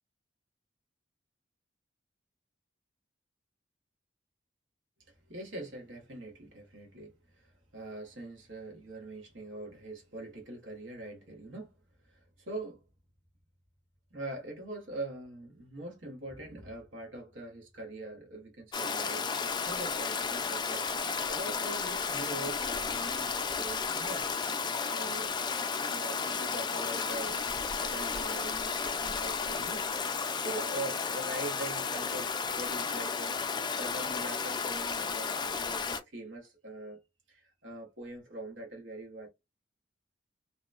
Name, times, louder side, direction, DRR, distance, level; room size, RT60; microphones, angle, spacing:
voice 1, 5.0-11.7 12.0-12.8 14.1-19.3 19.6-24.3 24.9-25.4 25.9-27.4 27.8-33.4 33.8-37.0 37.3-39.3, right 2 dB, 80° right, 1.1 m, -43 dB
Stream, 18.7-36.0, left 5 dB, 25° left, 0.4 m, -33 dB
2.8 x 2.1 x 2.4 m
head